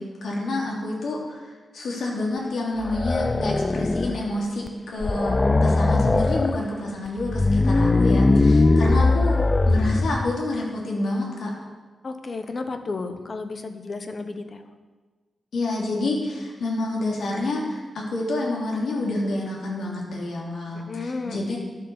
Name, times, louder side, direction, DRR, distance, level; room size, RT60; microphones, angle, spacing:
voice 1, 0.0-1.4 1.7-11.5 15.5-21.6, left 2 dB, 80° left, -2 dB, 2.9 m, -28 dB
sound 1, 2.8-4.3 4.7-4.8 5.0-6.6 7.2-10.3, left 2 dB, 25° left, 0.4 m, -20 dB
voice 2, 12.0-14.6 20.9-21.5, left 3 dB, 40° left, 7 dB, 1.0 m, -32 dB
11.5 x 7.7 x 7.1 m, 1.4 s
wide cardioid pair, 140°, 0 cm